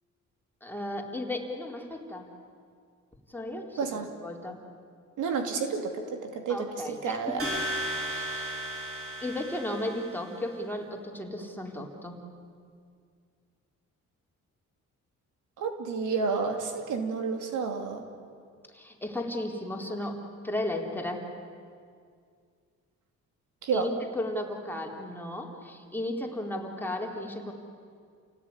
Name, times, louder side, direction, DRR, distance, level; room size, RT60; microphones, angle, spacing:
voice 1, 0.6-2.3 3.3-4.6 6.5-7.5 8.1-8.6 9.2-12.2 18.7-21.2 23.7-23.9 24.1-27.5, left 1 dB, 5° left, 0 dB, 3.9 m, -35 dB
voice 2, 3.8-4.1 5.2-7.4 15.6-18.0 23.6-23.9, right 5 dB, 80° right, 5 dB, 2.9 m, -30 dB
sound 1, 7.4-10.3, right 1 dB, 45° right, 6.2 m, -35 dB
29.0 x 18.0 x 9.8 m, 2.2 s
cardioid pair, 90°, 30 cm